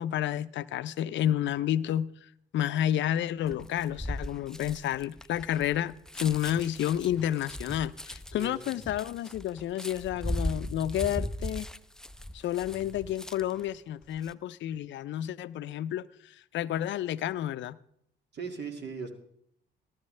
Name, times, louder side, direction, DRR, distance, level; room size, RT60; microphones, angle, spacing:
voice 1, 0.0-2.1 2.5-11.7 12.3-17.8, left 11 dB, 70° left, 0.4 m, -30 dB
sound 1, 3.5-13.6 14.0-14.3, left 1 dB, 5° left, 0.3 m, -38 dB
voice 2, 8.4-8.8 18.3-19.1, right 5 dB, 60° right, 2.1 m, -38 dB
15.0 x 12.5 x 3.2 m
cardioid pair, 90°, 20 cm